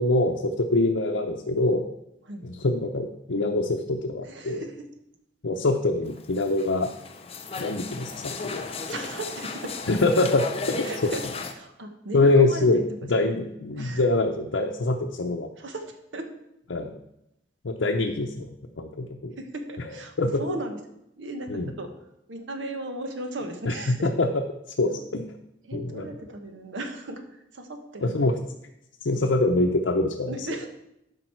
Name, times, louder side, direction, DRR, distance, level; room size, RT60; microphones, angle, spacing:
voice 1, 0.0-1.8 2.4-4.6 5.4-6.9 7.6-8.7 9.9-10.9 12.1-12.8 13.1-15.5 16.7-16.9 17.6-19.4 20.2-20.4 21.5-21.7 23.7-24.3 24.8-25.3 25.7-26.1 28.0-28.3 29.0-30.3, left 2 dB, 85° left, 1 dB, 0.7 m, -24 dB
voice 2, 4.2-4.8 8.9-9.8 10.8-11.2 11.5-12.8 13.1-13.4 13.8-14.0 15.6-16.3 19.4-20.8 21.2-21.9 22.3-24.1 24.9-25.0 25.6-28.3 30.3-30.7, right 1 dB, 80° right, 6 dB, 1.2 m, -36 dB
sound 1, 6.1-11.5, left 4 dB, 30° left, 0.7 m, -35 dB
12.0 x 5.2 x 4.4 m, 0.82 s
head